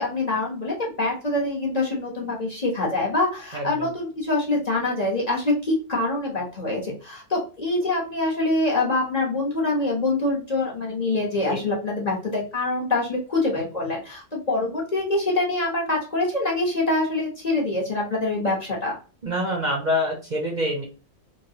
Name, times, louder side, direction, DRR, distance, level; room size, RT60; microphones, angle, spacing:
voice 1, 0.0-18.9, left 2 dB, 35° left, -3 dB, 1.1 m, -25 dB
voice 2, 3.5-3.9 11.5-11.6 19.2-20.8, left 1 dB, 45° right, -1 dB, 0.8 m, -26 dB
3.3 x 2.3 x 2.7 m, 0.36 s
omnidirectional pair, 1.2 m